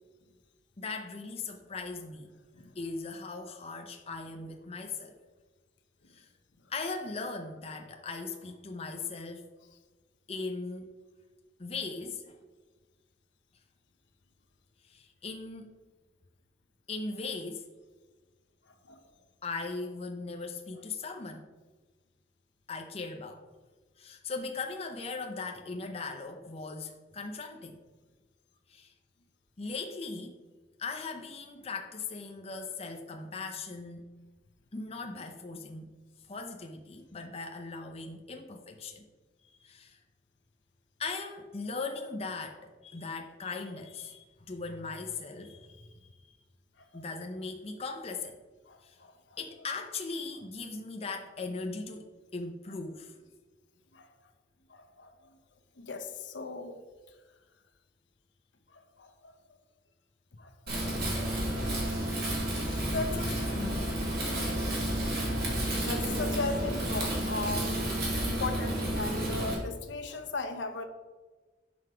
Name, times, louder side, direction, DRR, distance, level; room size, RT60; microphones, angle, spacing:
voice 1, 0.8-2.3 2.8-5.1 6.1-6.3 6.7-9.4 10.3-10.9 11.6-12.4 14.9-15.7 16.9-17.6 19.4-21.5 22.7-23.4 24.0-27.8 28.7-28.9 29.6-30.3 30.8-34.1 34.7-35.9 36.3-39.1 39.5-40.0 41.0-45.9 46.2-46.3 46.9-48.4 48.8-49.0 49.4-53.1, left 3 dB, 35° left, 3 dB, 0.6 m, -39 dB
voice 2, 18.7-19.0 46.8-47.0 48.7-49.4 53.9-54.1 54.7-55.4 55.8-56.8 58.7-59.6 60.4-60.5 62.4-63.5 63.7-67.8 68.2-70.9, left 3 dB, 80° left, 5 dB, 0.9 m, -39 dB
Wind, 60.7-69.5, right 1 dB, 55° right, 2.4 m, -31 dB
7.8 x 6.2 x 4.9 m, 1.3 s
head